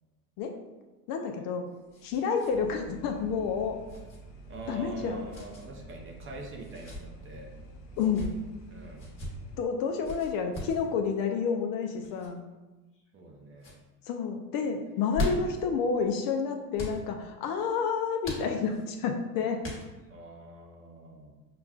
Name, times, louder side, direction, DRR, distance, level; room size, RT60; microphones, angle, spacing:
voice 1, 1.1-1.6 2.0-3.8 4.7-5.3 8.0-8.3 9.6-12.4 14.0-19.6, left 5 dB, 50° left, 4 dB, 0.5 m, -29 dB
sound 1, 1.2-2.5 2.8-2.9 3.9-4.2 5.3-5.7 6.6-7.0 7.9-8.3 9.0-9.3 10.0-10.8 12.0-12.3 12.9-13.3 13.6-13.8 14.9-15.6 16.7-17.0 18.2-18.9 19.6-20.1, left 2 dB, 25° left, 1.2 m, -38 dB
sound 2, 2.5-9.6, right 2 dB, 80° left, 0.9 m, -48 dB
voice 2, 4.5-7.5 8.7-9.1 13.1-13.8 20.1-21.3, right 2 dB, 25° right, 1 dB, 0.6 m, -44 dB
5.7 x 2.3 x 2.3 m, 1.1 s
supercardioid pair, 95°, 48 cm